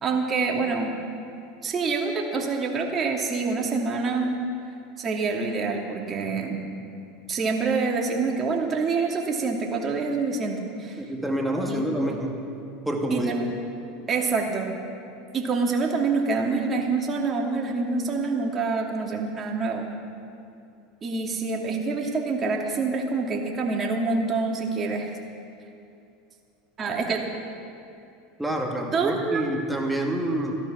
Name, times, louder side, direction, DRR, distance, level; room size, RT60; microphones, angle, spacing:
voice 1, 0.0-1.0 1.6-4.4 5.0-6.6 7.3-11.0 11.7-11.9 13.1-13.5 14.1-14.7 15.3-19.9 21.0-25.1 26.8-27.3 28.9-29.4, right 4 dB, 35° right, 0 dB, 2.5 m, -26 dB
voice 2, 11.0-12.4 12.9-13.3 28.4-30.6, right 1 dB, 5° right, 0 dB, 2.4 m, -27 dB
15.0 x 12.0 x 6.2 m, 2.6 s
hypercardioid pair, 95°, 0 cm